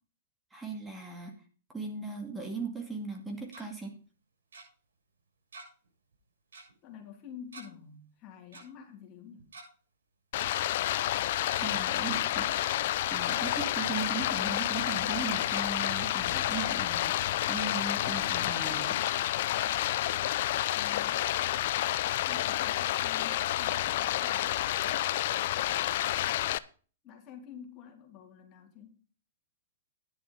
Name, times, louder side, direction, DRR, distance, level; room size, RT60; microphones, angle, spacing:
voice 1, 0.5-1.3 1.7-3.9 11.5-12.5 13.1-17.2 17.5-19.0, right 4 dB, 10° right, 3 dB, 2.1 m, -38 dB
Tick-tock, 3.3-3.6 4.5-4.6 5.5-5.9 6.1-6.2 6.5-6.7 7.5-7.7 8.5-8.6 9.4-9.7 10.5-10.6 11.4-11.8 12.1-12.2 12.5-12.6 13.2-13.6 14.1-14.6 15.1-15.2 15.5-15.7 16.5-16.6 17.5-17.6, right 3 dB, 80° right, 7.2 m, -48 dB
voice 2, 6.8-9.5 20.7-21.3 22.2-24.6 27.0-29.0, left 8 dB, 35° left, 3 dB, 2.9 m, -49 dB
Stream, 10.3-26.6, left 13 dB, 55° left, 0.6 m, -29 dB
11.0 x 6.8 x 5.4 m, 0.38 s
hypercardioid pair, 125°, 0 cm